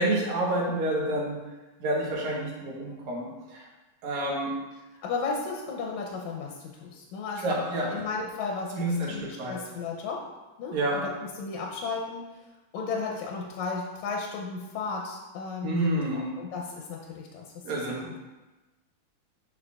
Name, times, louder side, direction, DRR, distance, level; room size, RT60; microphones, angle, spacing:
voice 1, 0.0-1.4 1.8-3.7 4.0-4.5 7.4-8.0 8.8-9.6 10.7-11.0 15.6-16.3 17.6-18.1, right 1 dB, 70° right, -3 dB, 2.5 m, -28 dB
voice 2, 5.0-6.6 6.8-7.6 7.9-10.2 10.6-11.1 11.4-12.2 12.7-17.5 17.7-18.1, left 4 dB, 80° left, 0 dB, 1.9 m, -34 dB
9.9 x 4.2 x 2.4 m, 1.1 s
omnidirectional pair, 3.5 m